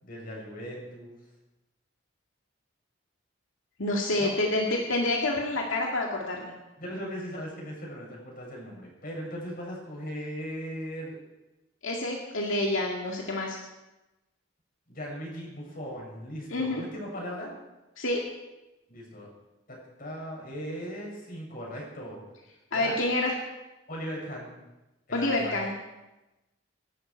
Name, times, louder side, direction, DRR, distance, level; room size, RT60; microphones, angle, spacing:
voice 1, 0.0-1.2 4.2-4.3 6.8-11.2 14.9-17.5 18.9-19.3 19.7-22.2 22.7-22.9 23.9-24.5 25.1-25.6, equal, 45° left, -2 dB, 6.6 m, -38 dB
voice 2, 3.8-6.5 11.8-13.6 16.5-16.8 18.0-18.2 22.7-23.4 25.1-25.7, left 2 dB, 85° left, -1 dB, 2.2 m, -28 dB
25.0 x 12.0 x 4.6 m, 1.0 s
head